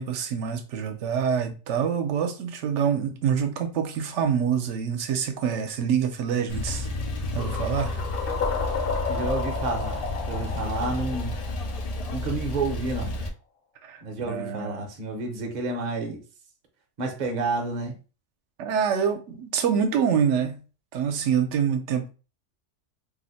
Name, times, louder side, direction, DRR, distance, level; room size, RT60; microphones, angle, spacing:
voice 1, 0.0-6.9 7.3-8.0 13.8-14.9 18.6-20.6 20.9-22.1, right 7 dB, 80° right, 0.9 m, -26 dB
Male speech man speaking / Car / Idling, 6.5-13.3, left 2 dB, 80° left, 0.3 m, -31 dB
sound 1, 7.4-12.3, left 4 dB, 55° left, 0.8 m, -32 dB
voice 2, 9.1-11.5 12.1-13.2 14.0-16.2 17.0-18.0, right 3 dB, 45° right, 0.7 m, -30 dB
2.7 x 2.1 x 3.9 m
omnidirectional pair, 1.2 m